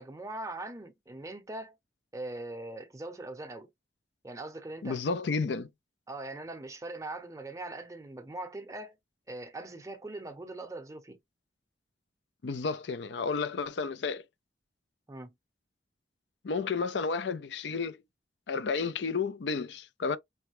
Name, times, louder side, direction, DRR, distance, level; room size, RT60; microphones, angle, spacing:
voice 1, 0.0-1.7 2.1-3.7 4.2-5.0 6.1-9.0 9.3-11.2 15.1-15.3, right 2 dB, 15° right, 0.6 m, -41 dB
voice 2, 4.8-5.7 12.4-14.2 16.4-18.0 18.5-20.2, left 4 dB, 75° left, 0.5 m, -31 dB
5.4 x 2.2 x 3.0 m
head